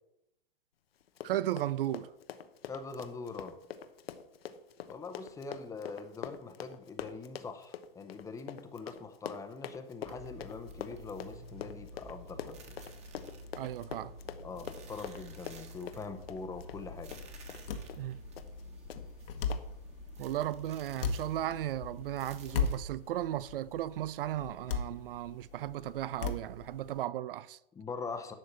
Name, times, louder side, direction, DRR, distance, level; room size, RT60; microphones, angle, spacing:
Run, 1.0-17.6 17.9-18.1 18.4-18.6 18.9-19.0 19.5-19.6, left 8 dB, 90° left, 1.0 m, -44 dB
voice 1, 1.2-2.1 13.6-14.1 18.0-18.2 20.2-27.6, right 13 dB, 70° right, 0.5 m, -35 dB
voice 2, 2.7-3.6 4.9-12.8 14.4-17.1 27.7-28.3, left 4 dB, 10° left, 0.8 m, -43 dB
sound 1, 10.0-22.8, equal, 20° right, 1.5 m, -49 dB
sound 2, 16.5-27.0, left 5 dB, 70° left, 1.5 m, -39 dB
11.5 x 4.3 x 8.1 m
hypercardioid pair, 145°, 29 cm